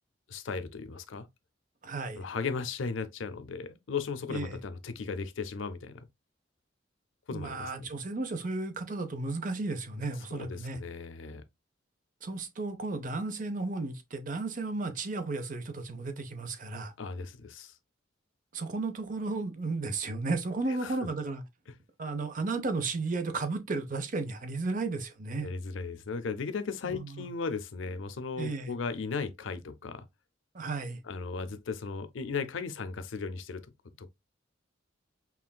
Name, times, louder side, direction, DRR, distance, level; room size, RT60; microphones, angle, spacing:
voice 1, 0.3-1.3 2.2-6.1 7.3-7.8 10.3-11.4 17.0-17.7 20.8-20.9 25.4-30.1 31.0-33.6 34.0-34.1, left 4 dB, 80° left, 0.6 m, -36 dB
voice 2, 1.8-2.2 4.3-4.6 7.3-10.8 12.2-16.9 18.5-21.4 22.0-25.5 26.9-27.3 28.4-28.7 30.5-31.0, right 3 dB, 45° right, 0.6 m, -34 dB
5.5 x 2.5 x 2.2 m
head